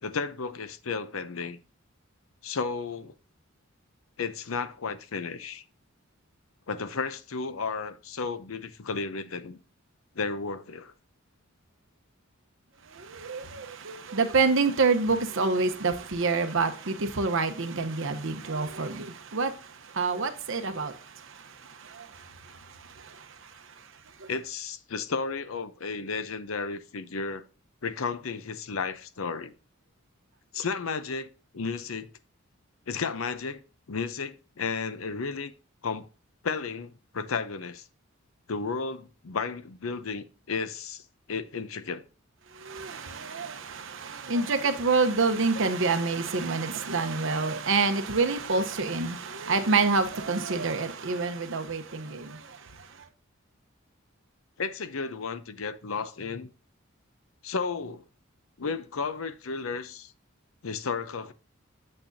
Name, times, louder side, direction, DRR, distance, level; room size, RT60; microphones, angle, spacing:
voice 1, 0.0-1.6 2.4-3.1 4.2-5.6 6.7-9.6 10.2-10.9 24.3-27.4 27.8-29.5 30.5-32.1 32.9-33.6 33.9-35.5 35.8-36.1 36.4-37.9 38.5-41.0 41.3-42.0 54.6-56.5 57.4-58.0 58.6-60.1 60.6-61.3, left 5 dB, 80° left, 0.7 m, -33 dB
voice 2, 12.8-23.9 24.2-24.3 42.5-53.1, right 4 dB, 65° right, 0.9 m, -28 dB
8.7 x 6.8 x 2.7 m
head